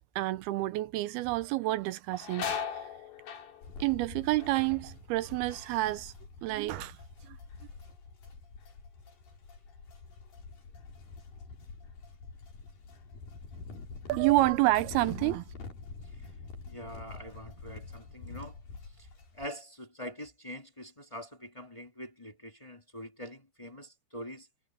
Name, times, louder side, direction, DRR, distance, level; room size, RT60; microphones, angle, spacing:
voice 1, 0.2-2.4 2.7-2.8 3.8-6.1 6.4-7.0 7.3-7.4 14.1-15.5, right 18 dB, 80° right, 2.5 m, -28 dB
sound 1, 0.9-1.3 1.6-7.2 7.5-8.1 8.6-11.5 11.8-12.0 12.9-13.1 13.6-14.7 15.1-15.3 15.9-16.5 16.9-18.0, left 7 dB, 80° left, 4.8 m, -43 dB
sound 2, 3.6-19.5, left 4 dB, 60° left, 6.2 m, -46 dB
voice 2, 16.6-24.5, equal, 15° left, 1.0 m, -45 dB
omnidirectional pair, 4.6 m